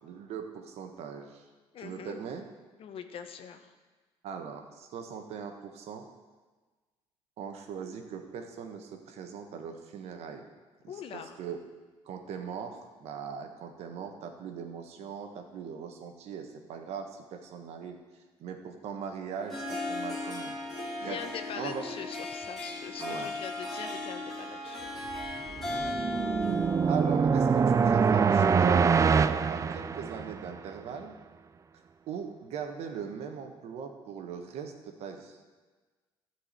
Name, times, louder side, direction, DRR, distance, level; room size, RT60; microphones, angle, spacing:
voice 1, 0.0-1.4 1.8-2.5 4.2-6.1 7.4-10.4 10.8-11.6 12.0-18.0 18.4-20.6 21.0-21.2 21.6-21.8 23.0-23.3 25.7-25.9 26.8-31.2 32.1-35.4, right 6 dB, 65° right, 5 dB, 1.4 m, -40 dB
voice 2, 1.7-2.2 2.8-3.7 10.9-11.4 21.0-24.9, left 7 dB, 55° left, 8 dB, 1.0 m, -42 dB
Harp, 19.3-28.1, left 2 dB, ahead, 2.9 m, -37 dB
sound 1, 25.3-30.5, right 6 dB, 30° right, 0.4 m, -24 dB
13.0 x 4.8 x 8.2 m, 1.3 s
supercardioid pair, 90°, 11 cm